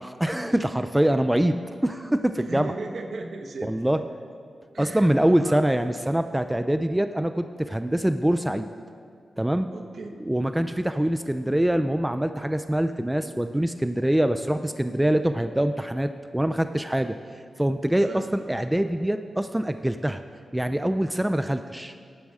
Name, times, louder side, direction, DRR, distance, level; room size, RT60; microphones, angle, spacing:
voice 1, 0.0-1.6 1.8-2.7 3.6-4.0 4.8-8.7 9.4-9.7 10.3-17.2 17.6-20.2 20.5-21.9, right 1 dB, 10° right, 9 dB, 0.4 m, -24 dB
voice 2, 2.3-3.7 4.7-5.6 9.7-10.1 17.9-18.4, right 3 dB, 65° right, 4 dB, 1.3 m, -37 dB
18.0 x 11.0 x 3.7 m, 2.2 s
cardioid pair, 80°, 0 cm